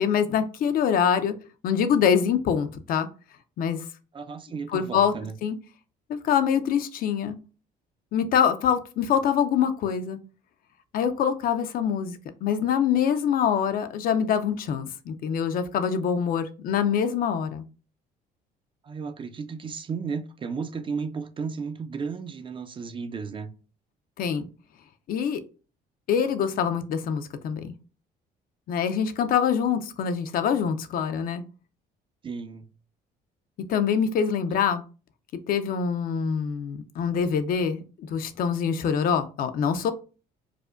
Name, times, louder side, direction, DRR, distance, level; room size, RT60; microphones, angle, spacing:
voice 1, 0.0-1.3 1.6-3.1 3.6-3.9 4.7-5.1 5.4-5.6 6.1-7.4 8.1-10.2 10.9-17.6 24.2-24.5 25.1-25.4 26.1-27.7 28.7-31.4 33.7-34.8 35.5-39.9, left 7 dB, 60° left, 0.5 m, -25 dB
voice 2, 4.1-5.3 18.8-23.5 32.2-32.7, right 5 dB, 30° right, 0.4 m, -34 dB
4.8 x 2.1 x 2.4 m
cardioid pair, 110°, 17 cm